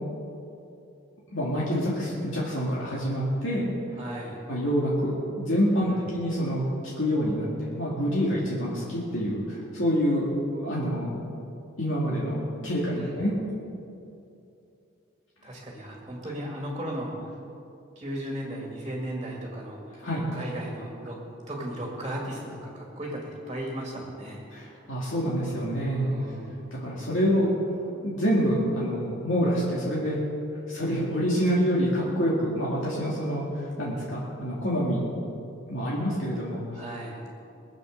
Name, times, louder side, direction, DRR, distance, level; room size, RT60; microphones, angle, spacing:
voice 1, 1.3-3.7 4.5-6.6 7.0-10.3 10.6-11.2 11.8-13.3 20.0-20.3 24.5-26.1 26.7-27.5 28.0-30.2 30.7-35.0 35.7-36.6, equal, 70° left, -6 dB, 2.4 m, -27 dB
voice 2, 3.9-4.4 5.8-6.2 12.9-13.2 15.4-17.4 18.0-24.4 26.0-26.6 36.7-37.2, right 1 dB, 20° right, -1 dB, 2.0 m, -36 dB
22.0 x 7.9 x 6.5 m, 2.7 s
head